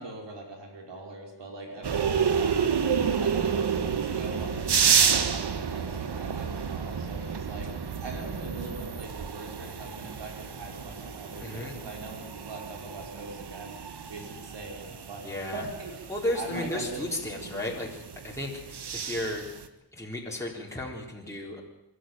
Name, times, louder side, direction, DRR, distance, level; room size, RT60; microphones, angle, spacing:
voice 1, 0.0-2.6 3.2-16.0 16.3-17.0, right 2 dB, 90° right, 1 dB, 5.0 m, -41 dB
sound 1, 1.8-19.7, right 6 dB, 70° right, 1.5 m, -30 dB
voice 2, 11.4-11.8 15.2-15.7 16.1-19.5 19.9-21.6, left 1 dB, 5° left, -3 dB, 4.0 m, -34 dB
23.5 x 13.0 x 9.2 m, 0.93 s
wide cardioid pair, 85°, 41 cm